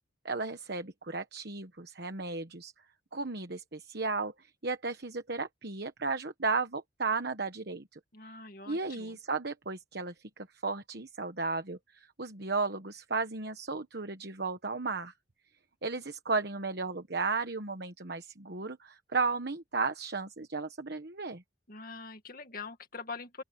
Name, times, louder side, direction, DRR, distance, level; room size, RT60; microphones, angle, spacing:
voice 1, 0.2-2.7 3.1-8.0 8.7-15.1 15.8-21.4, right 4 dB, 55° right, 1.2 m, -34 dB
voice 2, 8.1-9.2 21.7-23.4, left 4 dB, 45° left, 2.3 m, -44 dB
open air
head